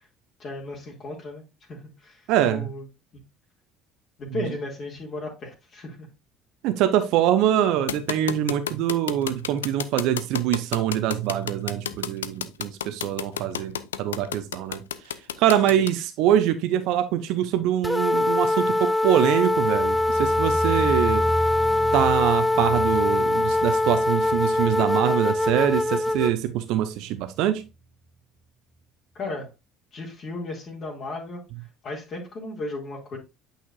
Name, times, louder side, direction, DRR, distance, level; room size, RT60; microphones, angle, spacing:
voice 1, 0.4-2.8 3.1-3.2 4.2-6.1 15.7-15.8 29.1-29.5 29.9-31.4 31.8-33.2, left 2 dB, 45° left, 2.1 m, -35 dB
voice 2, 2.3-2.7 6.6-14.8 15.4-21.2 21.9-27.6, right 11 dB, 65° right, 0.6 m, -24 dB
sound 1, 7.9-15.9, left 9 dB, 80° left, 0.4 m, -30 dB
sound 2, 17.8-26.3, left 1 dB, 5° left, 0.4 m, -23 dB
sound 3, 19.5-26.6 26.9-27.3 27.7-27.8, right 2 dB, 20° right, 1.5 m, -34 dB
8.5 x 5.7 x 2.5 m
hypercardioid pair, 60°, 0 cm